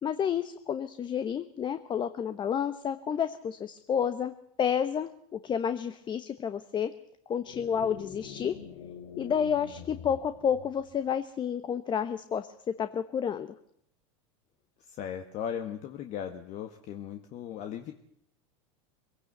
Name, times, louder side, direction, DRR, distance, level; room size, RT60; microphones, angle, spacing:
voice 1, 0.0-6.9 7.3-8.5 9.2-12.5 12.8-13.5, left 8 dB, 30° left, 10 dB, 1.1 m, -30 dB
sound 1, 7.5-11.1, left 7 dB, 65° left, 2.7 m, -45 dB
voice 2, 14.8-17.9, left 9 dB, 45° left, 6 dB, 1.7 m, -37 dB
23.5 x 17.0 x 8.1 m, 0.71 s
supercardioid pair, 110°, 17 cm